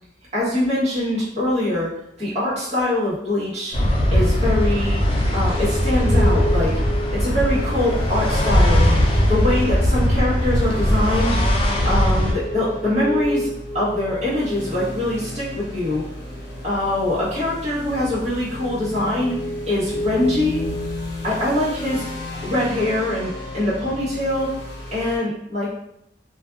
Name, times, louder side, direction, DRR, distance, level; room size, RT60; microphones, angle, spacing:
voice 1, 0.3-3.7 4.1-5.0 5.3-6.8 7.1-9.0 9.3-11.4 11.8-13.5 13.7-16.0 16.6-19.4 19.7-20.6 21.2-22.0 22.4-24.5 24.9-25.7, left 1 dB, 40° right, -10 dB, 1.4 m, -23 dB
sound 1, 3.7-12.3, equal, 30° left, 0.6 m, -19 dB
sound 2, 5.5-25.2, left 1 dB, 70° left, 1.0 m, -32 dB
2.6 x 2.5 x 2.5 m, 0.77 s
head